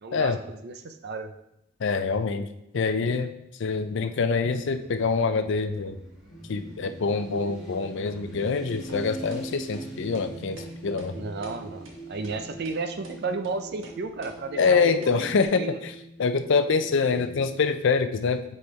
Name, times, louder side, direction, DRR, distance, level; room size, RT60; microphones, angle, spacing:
voice 1, 0.0-1.3 11.1-11.8 12.1-15.3 15.6-15.8, right 3 dB, 55° right, 8 dB, 0.5 m, -33 dB
voice 2, 1.8-2.5 2.7-3.3 3.6-6.0 6.5-11.2 14.6-15.9 16.2-18.4, left 4 dB, 65° left, 9 dB, 0.5 m, -25 dB
Motorcycle, 3.6-15.3, right 1 dB, 5° right, 1.7 m, -45 dB
sound 1, 6.3-17.5, right 2 dB, 35° left, 2.0 m, -45 dB
sound 2, 8.9-9.0 9.3-9.4 9.7-9.9 10.1-10.3 10.6-10.7 11.0-11.1 11.4-11.6 11.8-12.0 12.2-12.3 12.6-12.8 13.0-13.2 13.4-13.5 13.8-14.0 14.2-14.3 14.6-14.7 15.0-15.1 15.4-15.5, right 2 dB, 75° right, 1.2 m, -45 dB
8.1 x 4.3 x 3.2 m, 0.82 s
head